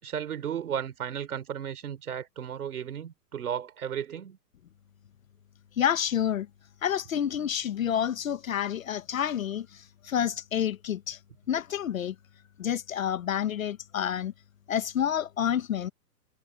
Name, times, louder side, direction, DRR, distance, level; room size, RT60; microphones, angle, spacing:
voice 1, 0.0-4.4, right 9 dB, 60° right, 4.8 m, -34 dB
voice 2, 5.8-6.5 6.8-11.2 11.5-12.1 12.6-14.3 14.7-15.9, left 9 dB, 55° left, 1.3 m, -29 dB
hypercardioid pair, 175°, 49 cm